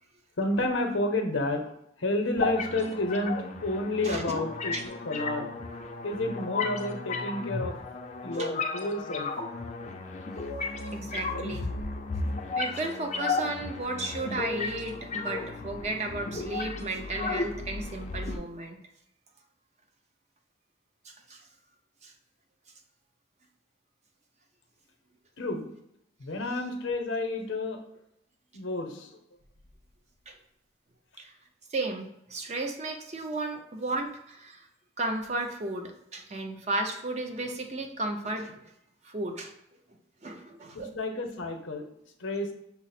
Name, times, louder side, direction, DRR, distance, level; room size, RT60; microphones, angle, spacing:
voice 1, 0.4-1.7 2.0-5.5 6.0-7.8 8.2-9.3 11.3-11.8 13.0-13.1 25.4-25.7 26.2-27.8 28.5-29.2 40.7-41.9 42.2-42.5, left 2 dB, 85° left, 5 dB, 0.7 m, -30 dB
sound 1, 2.4-18.4, left 3 dB, 35° left, 0.4 m, -34 dB
voice 2, 10.9-11.7 12.6-18.8 21.0-21.4 22.0-22.1 30.3-30.4 31.2-31.3 31.7-34.7 35.0-38.6 39.0-39.5 40.2-40.9, right 2 dB, 35° right, 4 dB, 0.5 m, -34 dB
5.9 x 2.0 x 4.1 m, 0.80 s
head